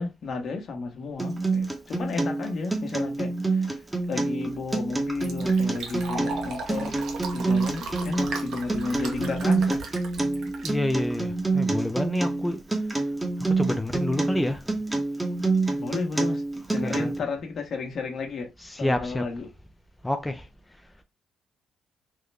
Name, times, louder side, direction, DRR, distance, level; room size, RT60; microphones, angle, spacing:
voice 1, 0.0-3.8 4.1-7.0 7.3-9.8 15.7-16.4 16.7-18.5 18.8-19.5, left 3 dB, 55° left, 1.1 m, -32 dB
Acoustic guitar, 1.2-17.2, right 3 dB, 15° right, 0.8 m, -27 dB
Fill (with liquid), 4.5-11.5, right 3 dB, 70° right, 1.0 m, -38 dB
voice 2, 10.6-12.6 13.6-14.6 16.8-17.1 18.6-19.2 20.0-20.5, left 1 dB, 10° left, 0.4 m, -28 dB
3.6 x 2.1 x 3.3 m
cardioid pair, 90°, 0 cm